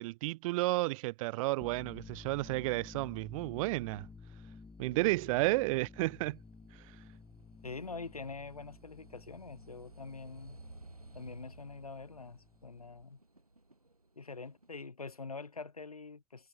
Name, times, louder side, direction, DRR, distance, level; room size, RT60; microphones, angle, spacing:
voice 1, 0.0-4.1 4.8-6.4, right 21 dB, 65° right, 0.6 m, -32 dB
sound 1, 1.6-13.0, left 4 dB, 15° left, 1.3 m, -54 dB
sound 2, 3.5-14.8, right 2 dB, 90° right, 2.8 m, -57 dB
voice 2, 7.6-10.6 11.1-13.2 14.2-16.5, left 4 dB, 85° left, 1.0 m, -45 dB
figure-of-eight pair, 60°, 18 cm